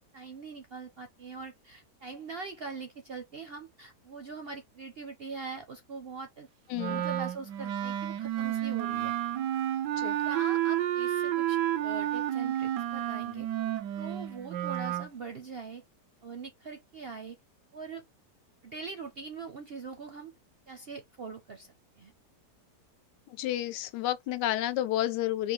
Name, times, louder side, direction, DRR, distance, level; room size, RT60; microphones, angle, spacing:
voice 1, 0.1-6.5 6.8-9.1 10.2-13.5 14.0-15.8 16.2-17.4 17.7-18.0 18.6-20.3 20.7-22.1, right 4 dB, 60° right, 0.6 m, -42 dB
voice 2, 6.7-7.0 10.0-10.2 23.4-25.5, left 13 dB, 85° left, 1.2 m, -30 dB
Wind instrument woodwind instrument, 6.8-15.1, right 12 dB, 85° right, 1.3 m, -31 dB
5.0 x 2.8 x 3.1 m
omnidirectional pair, 1.8 m